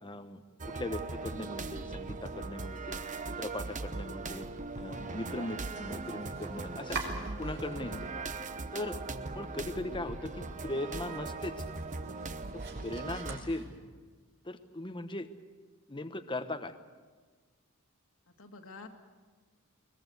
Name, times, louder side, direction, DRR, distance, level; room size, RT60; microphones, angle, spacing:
voice 1, 0.0-0.4 0.7-3.0 3.4-4.5 4.7-7.0 7.4-8.1 8.7-9.0 9.3-11.6 12.5-13.7 14.4-15.3 15.9-16.7, left 1 dB, 20° left, 9 dB, 1.1 m, -39 dB
sound 1, 0.6-13.4, right 3 dB, 35° right, 1.0 m, -39 dB
Domestic sounds home sounds, 5.4-8.0 8.3-9.1 9.4-9.5 9.9-10.0 10.4-14.1, right 4 dB, 55° right, 5.2 m, -46 dB
voice 2, 7.7-8.1 18.4-18.9, left 3 dB, 65° left, 4 dB, 2.2 m, -48 dB
22.0 x 21.0 x 8.1 m, 1.5 s
head